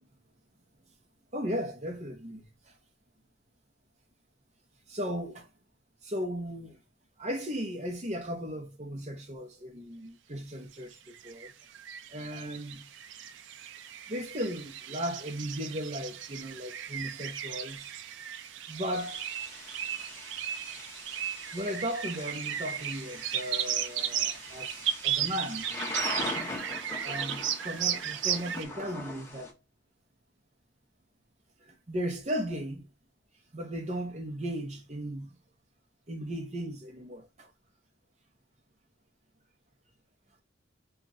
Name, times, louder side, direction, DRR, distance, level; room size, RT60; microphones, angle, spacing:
voice 1, 1.3-2.7 4.9-5.5 6.0-6.8 7.2-11.5 12.1-12.9 14.1-17.9 18.7-19.2 21.5-26.4 27.0-29.5 31.7-32.9 33.5-35.3 36.1-37.5, equal, 35° right, 0.8 m, -36 dB
sound 1, 10.9-28.6, right 10 dB, 75° right, 0.4 m, -35 dB
Thunder / Rain, 18.9-29.5, left 2 dB, 15° left, 0.8 m, -41 dB
3.0 x 2.4 x 3.9 m
head